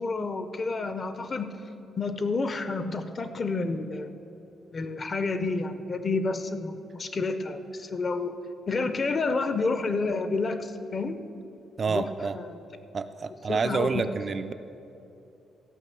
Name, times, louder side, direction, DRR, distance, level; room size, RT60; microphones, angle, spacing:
voice 1, 0.0-1.5 2.0-4.1 4.7-8.3 8.7-11.2 11.9-12.1 12.3-12.6 13.5-13.9, left 3 dB, 30° left, 10 dB, 0.6 m, -29 dB
voice 2, 11.8-12.4 12.9-14.5, right 5 dB, 35° right, 10 dB, 0.3 m, -28 dB
14.5 x 5.8 x 6.9 m, 2.8 s
cardioid pair, 140°, 0 cm